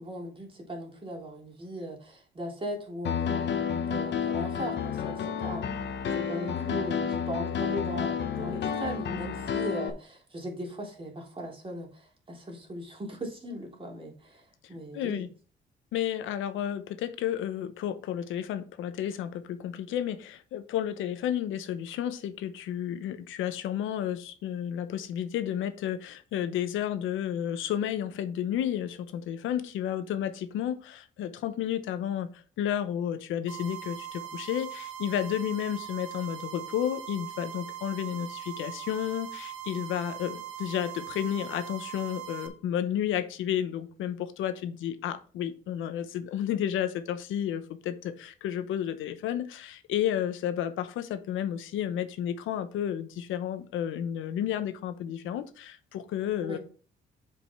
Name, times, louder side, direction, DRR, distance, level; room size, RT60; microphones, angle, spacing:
voice 1, 0.0-5.9 6.1-15.3 56.4-56.6, equal, 25° right, -1 dB, 3.4 m, -38 dB
Piano, 3.0-9.9, left 7 dB, 60° left, 1.0 m, -30 dB
voice 2, 14.9-15.3 15.9-56.6, left 10 dB, 90° left, 11 dB, 0.9 m, -32 dB
sound 1, 33.5-42.5, right 11 dB, 85° right, 1.5 m, -41 dB
7.3 x 5.2 x 4.5 m, 0.40 s
cardioid pair, 90°, 20 cm